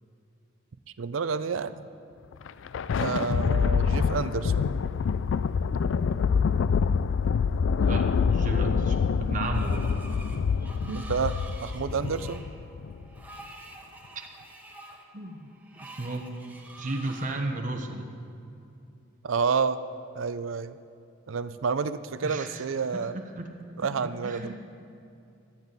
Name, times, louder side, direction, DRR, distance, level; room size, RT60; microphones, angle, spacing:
voice 1, 1.0-1.9 2.9-4.7 10.8-11.3 11.6-12.4 19.2-19.8 20.1-20.8 21.3-23.1 23.8-24.5, right 5 dB, 90° right, 13 dB, 0.5 m, -29 dB
Thunder, 2.3-13.1, left 6 dB, 70° left, 0.3 m, -26 dB
voice 2, 7.8-9.9 14.1-14.3 15.1-15.5 15.8-16.3 16.8-18.1 22.2-22.6 23.4-23.5 24.2-24.5, right 2 dB, 40° right, 3 dB, 1.0 m, -33 dB
Screech, 9.5-17.4, right 2 dB, 10° right, 1.2 m, -47 dB
17.0 x 12.0 x 4.1 m, 2.6 s
head